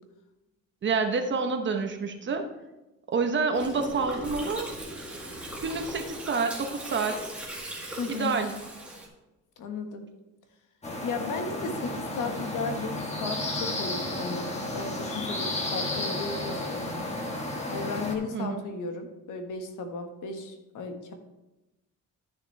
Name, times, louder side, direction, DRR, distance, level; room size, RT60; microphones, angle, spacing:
voice 1, 0.8-2.5 3.1-4.7 5.6-7.2 8.1-8.5 18.3-18.6, right 4 dB, 35° right, 5 dB, 1.0 m, -28 dB
Gurgling, 3.5-9.1, right 1 dB, 5° right, 1.9 m, -39 dB
voice 2, 8.0-8.4 9.6-10.1 11.0-16.9 17.7-21.1, left 4 dB, 75° left, 5 dB, 1.4 m, -35 dB
sound 1, 10.8-18.1, left 1 dB, 20° left, 1.4 m, -32 dB
12.5 x 6.9 x 3.3 m, 1.0 s
cardioid pair, 155°, 31 cm